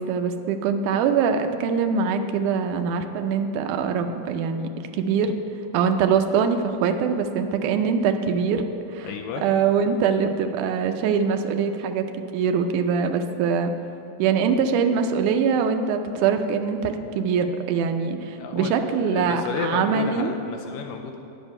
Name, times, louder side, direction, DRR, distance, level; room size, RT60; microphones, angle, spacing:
voice 1, 0.0-4.7 5.0-5.3 5.7-8.6 8.9-9.1 9.4-12.0 12.3-13.7 14.2-20.3, right 6 dB, 80° right, 6 dB, 1.8 m, -23 dB
voice 2, 9.0-9.4 18.4-21.2, left 6 dB, 80° left, 4 dB, 2.1 m, -32 dB
10.0 x 8.0 x 5.3 m, 2.9 s
omnidirectional pair, 4.2 m